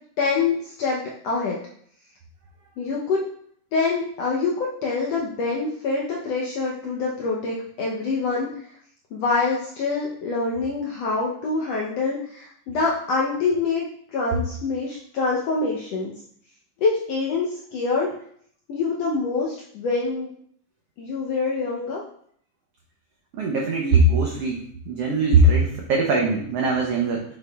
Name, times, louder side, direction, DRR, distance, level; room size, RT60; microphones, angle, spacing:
voice 1, 0.2-1.6 2.8-3.2 3.7-8.5 9.1-13.8 14.1-16.1 16.8-18.1 18.7-20.3 21.0-22.0, left 4 dB, 75° left, -3 dB, 1.5 m, -25 dB
voice 2, 23.3-24.6 24.9-27.2, right 2 dB, 85° right, 0 dB, 1.3 m, -20 dB
7.5 x 6.1 x 2.3 m, 0.63 s
omnidirectional pair, 3.8 m